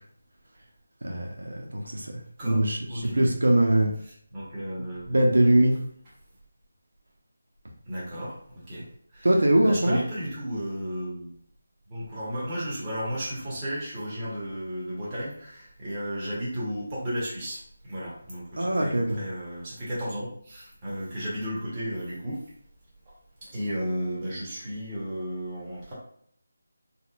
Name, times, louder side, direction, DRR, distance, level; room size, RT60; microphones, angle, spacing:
voice 1, 1.0-2.2 2.4-3.9 5.1-5.8 9.2-10.0 18.6-19.2, right 1 dB, 85° right, 1 dB, 0.6 m, -22 dB
voice 2, 2.9-3.6 4.3-5.2 7.9-8.4 8.7-8.9 9.1-9.3 9.6-11.3 11.9-17.6 17.9-22.4 23.4-25.9, equal, 20° right, -8 dB, 1.2 m, -33 dB
4.1 x 2.2 x 2.5 m, 0.62 s
figure-of-eight pair, 165°, 0 cm